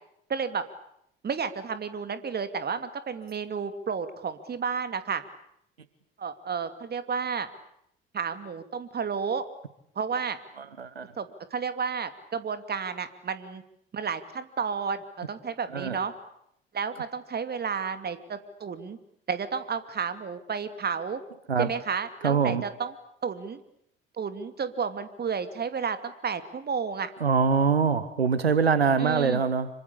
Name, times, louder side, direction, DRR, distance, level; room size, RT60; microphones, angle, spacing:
voice 1, 0.3-0.6 1.2-5.2 6.2-7.5 8.1-9.4 10.0-10.4 11.2-13.6 13.9-15.0 15.3-16.1 16.7-19.0 19.3-21.2 21.6-22.9 23.2-23.6 24.2-27.1 29.0-29.4, right 6 dB, 30° right, 11 dB, 2.8 m, -31 dB
voice 2, 10.6-11.1 15.7-16.0 21.5-21.7 22.2-22.6 27.2-29.7, right 5 dB, 85° right, 14 dB, 1.1 m, -24 dB
26.5 x 24.5 x 8.6 m, 0.75 s
figure-of-eight pair, 55°, 30 cm